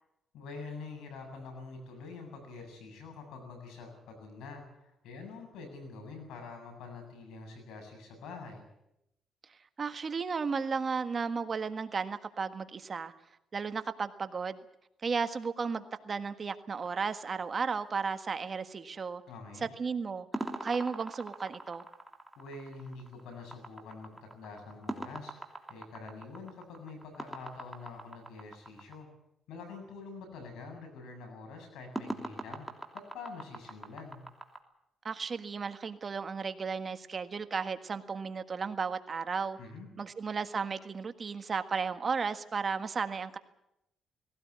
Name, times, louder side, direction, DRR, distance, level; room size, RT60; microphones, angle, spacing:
voice 1, 0.3-8.6 19.3-19.7 22.4-29.1 29.5-32.7 33.1-34.2 39.6-39.9, left 4 dB, 85° left, 4 dB, 7.6 m, -46 dB
voice 2, 9.8-13.1 13.5-14.6 15.0-19.2 19.6-20.3 20.6-21.8 35.0-39.6 40.0-43.4, right 5 dB, 40° right, 9 dB, 1.6 m, -34 dB
sound 1, 16.7-18.1 20.3-28.9 31.9-34.6, right 1 dB, 5° right, 3.0 m, -42 dB
19.0 x 17.5 x 9.6 m, 0.85 s
cardioid pair, 90°, 0 cm